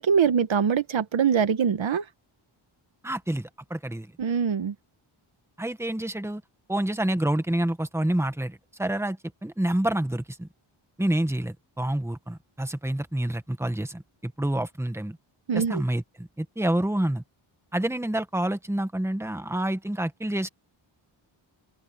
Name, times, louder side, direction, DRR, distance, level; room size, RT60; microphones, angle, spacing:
voice 1, 0.0-2.0 4.2-4.7 15.5-15.8, right 7 dB, 65° right, 1.6 m, -23 dB
voice 2, 3.0-4.1 5.6-6.4 6.7-10.5 11.0-15.2 15.5-17.2 17.7-20.5, right 1 dB, 5° right, 1.7 m, -28 dB
open air
cardioid pair, 70°, 50 cm